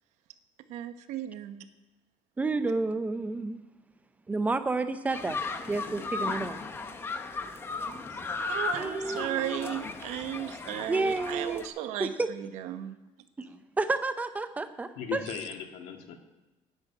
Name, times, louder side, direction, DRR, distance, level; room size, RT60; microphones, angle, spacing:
voice 1, 0.7-1.7 7.9-8.2 8.5-13.0, right 11 dB, 85° right, 9 dB, 1.1 m, -35 dB
voice 2, 2.4-3.6 4.3-5.4 5.7-6.6 8.8-9.7 10.9-11.6 12.0-12.3 13.4-15.2, right 3 dB, 15° right, 10 dB, 0.6 m, -30 dB
sound 1, 5.1-11.7, left 4 dB, 20° left, 0.8 m, -36 dB
voice 3, 15.0-16.2, left 8 dB, 75° left, 4 dB, 2.0 m, -37 dB
10.5 x 9.7 x 8.7 m, 1.1 s
cardioid pair, 175°, 12 cm